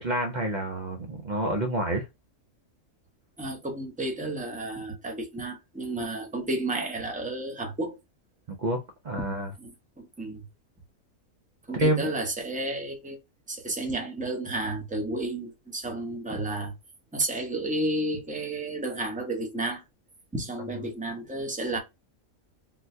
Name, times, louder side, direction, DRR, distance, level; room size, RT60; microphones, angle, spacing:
voice 1, 0.0-2.1 8.6-8.8 9.0-9.5 11.7-12.1, right 1 dB, 70° right, 0.4 m, -27 dB
voice 2, 3.4-8.0 9.6-9.7 10.0-10.4 11.7-13.2 13.5-16.7 17.1-19.8 20.3-21.8, right 2 dB, 10° right, 0.6 m, -32 dB
3.7 x 2.2 x 2.6 m
omnidirectional pair, 1.5 m